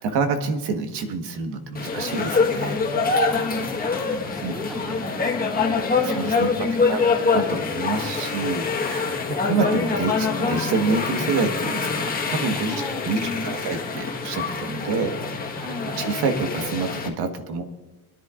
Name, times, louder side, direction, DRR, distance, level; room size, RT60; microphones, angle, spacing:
voice 1, 0.0-2.8 4.4-4.5 6.0-7.0 7.3-12.7 13.0-15.5 15.8-17.6, right 4 dB, 75° right, 6 dB, 1.5 m, -27 dB
sound 1, 1.7-17.1, left 4 dB, 20° left, 1.4 m, -25 dB
voice 2, 3.3-6.0 6.6-7.3 12.7-13.8 15.6-16.0, left 1 dB, ahead, 8 dB, 0.6 m, -34 dB
25.5 x 10.5 x 2.5 m, 1.1 s
cardioid pair, 145°, 41 cm